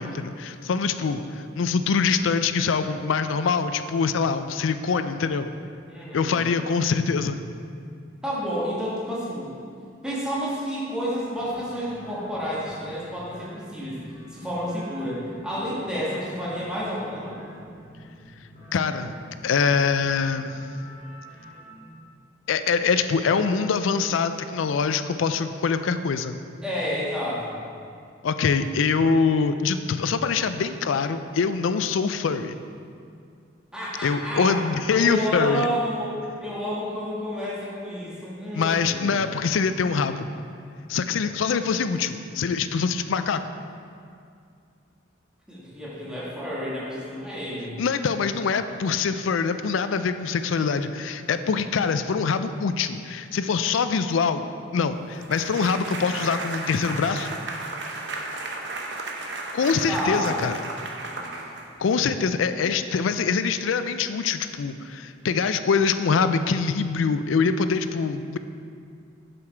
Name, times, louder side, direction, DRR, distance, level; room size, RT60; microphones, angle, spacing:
voice 1, 0.0-5.5 6.1-7.4 18.7-19.1 19.4-20.5 22.5-26.4 28.2-32.5 34.0-35.7 38.6-40.3 40.9-43.4 47.8-54.5 54.7-57.4 59.5-60.6 61.8-68.4, left 5 dB, 80° left, 10 dB, 0.4 m, -24 dB
voice 2, 5.9-6.5 8.2-9.5 10.0-14.0 14.3-17.4 26.6-27.6 33.7-34.6 34.9-36.1 36.4-39.4 45.5-47.8 59.9-60.5 61.1-61.4, equal, 5° right, -8 dB, 1.6 m, -30 dB
sound 1, 11.3-21.9, equal, 40° left, 1.7 m, -47 dB
sound 2, 55.2-61.9, right 3 dB, 60° right, 0.8 m, -34 dB
7.1 x 6.8 x 4.5 m, 2.3 s
head